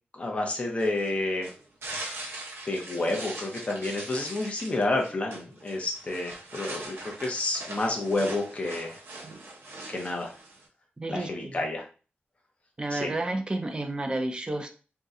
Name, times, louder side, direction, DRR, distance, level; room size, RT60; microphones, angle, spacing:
voice 1, 0.1-1.5 2.7-8.9 9.9-10.3 11.1-11.8 12.9-13.1, left 2 dB, 30° left, 1 dB, 0.6 m, -30 dB
sound 1, 0.8-10.7, right 2 dB, 85° right, 0.6 m, -41 dB
voice 2, 11.0-11.5 12.8-14.7, right 2 dB, 25° right, 5 dB, 0.5 m, -31 dB
2.7 x 2.1 x 3.6 m, 0.36 s
wide cardioid pair, 135°, 4 cm